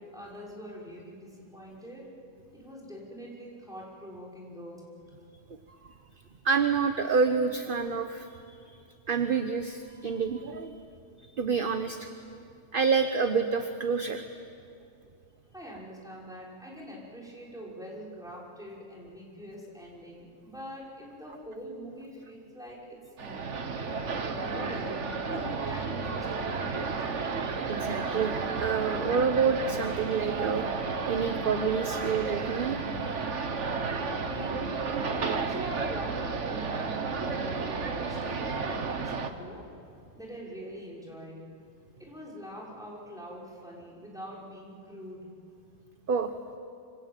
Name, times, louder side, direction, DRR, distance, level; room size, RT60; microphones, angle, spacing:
voice 1, 0.0-2.1 2.5-4.9 15.5-25.0 25.3-26.7 34.1-39.7 40.1-41.4 42.0-45.3, equal, 5° right, -4 dB, 6.0 m, -44 dB
voice 2, 6.4-8.8 9.1-10.7 11.2-12.1 12.7-14.2 27.7-30.7 31.1-32.8 33.0-33.2 33.5-33.7 46.1-46.3, right 5 dB, 45° right, 8 dB, 1.2 m, -28 dB
sound 1, 23.2-39.3, right 4 dB, 65° right, 1.7 m, -32 dB
25.5 x 25.5 x 9.1 m, 2.4 s
omnidirectional pair, 1.4 m